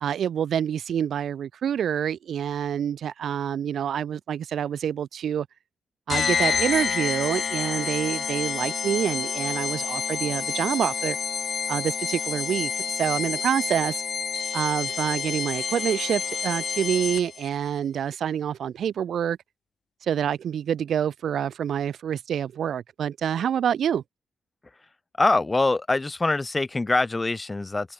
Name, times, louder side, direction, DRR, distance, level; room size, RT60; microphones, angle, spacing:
voice 1, 0.0-5.5 6.1-11.2 11.7-12.7 13.0-14.0 14.5-19.4 20.0-24.0, right 9 dB, 70° right, 2.0 m, -27 dB
sound 1, 6.1-17.5, left 6 dB, 50° left, 1.7 m, -28 dB
voice 2, 25.2-27.9, left 2 dB, 20° left, 3.5 m, -24 dB
cardioid pair, 120°, 0 cm